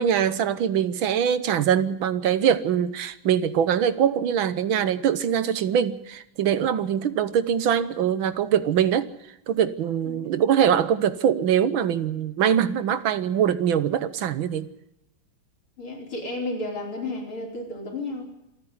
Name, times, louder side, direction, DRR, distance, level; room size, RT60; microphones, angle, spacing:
voice 1, 0.0-9.1 9.5-14.7, right 9 dB, 70° right, 14 dB, 1.7 m, -23 dB
voice 2, 15.8-18.2, left 2 dB, 80° left, 0 dB, 5.4 m, -32 dB
27.0 x 9.8 x 9.8 m, 0.84 s
omnidirectional pair, 2.3 m